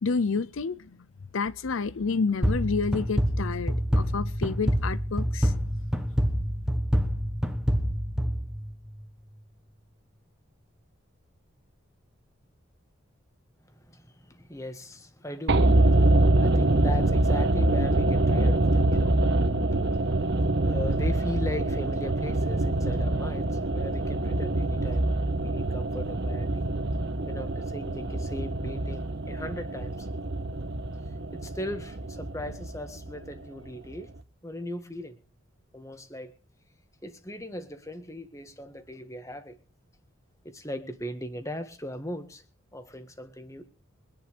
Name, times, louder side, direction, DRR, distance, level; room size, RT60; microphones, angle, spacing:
voice 1, 0.0-1.1 1.3-5.5, left 4 dB, 70° left, 0.6 m, -29 dB
sound 1, 2.4-9.0, equal, 5° right, 1.3 m, -27 dB
voice 2, 13.7-26.6 27.2-30.1 31.1-34.1 34.4-35.2 35.7-36.3 37.0-39.6 40.4-42.4 42.7-43.6, left 1 dB, 15° left, 1.7 m, -39 dB
sound 2, 15.5-33.7 33.9-34.0, right 2 dB, 55° right, 1.3 m, -25 dB
24.0 x 10.5 x 3.4 m
head